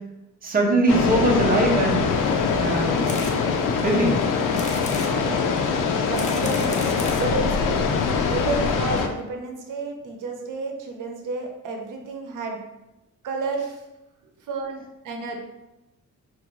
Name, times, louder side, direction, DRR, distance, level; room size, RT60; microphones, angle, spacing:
voice 1, 0.4-2.0 2.6-3.0 3.8-4.2, right 1 dB, 30° right, -1 dB, 0.6 m, -21 dB
sound 1, 0.9-9.1, left 5 dB, 85° left, 0.5 m, -23 dB
sound 2, 3.0-3.4 3.8-3.9 4.5-5.1 5.9-7.3 8.1-8.2 8.4-8.5 8.7-8.8, left 2 dB, 25° left, 0.4 m, -35 dB
voice 2, 4.8-5.5 6.1-7.9 8.3-12.6 13.2-13.8 14.2-15.4, right 3 dB, 80° right, 2 dB, 0.7 m, -31 dB
4.1 x 2.6 x 3.0 m, 0.95 s
wide cardioid pair, 155°, 31 cm